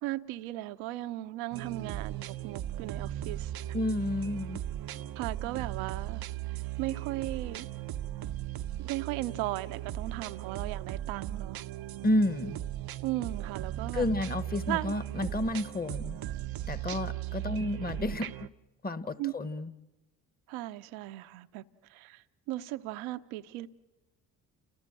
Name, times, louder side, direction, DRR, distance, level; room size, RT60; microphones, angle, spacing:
voice 1, 0.0-3.5 5.2-6.2 6.8-7.7 8.8-11.6 13.0-14.1 14.7-14.9 17.5-17.6 19.2-19.3 20.5-21.6 21.9-23.7, right 16 dB, 75° right, 1.0 m, -36 dB
sound 1, 1.5-18.5, right 12 dB, 50° right, 0.8 m, -37 dB
voice 2, 3.7-4.6 12.0-12.6 13.9-16.2 16.7-18.5 18.8-19.7, left 1 dB, 20° left, 1.2 m, -31 dB
29.5 x 19.0 x 7.7 m
hypercardioid pair, 55°, 49 cm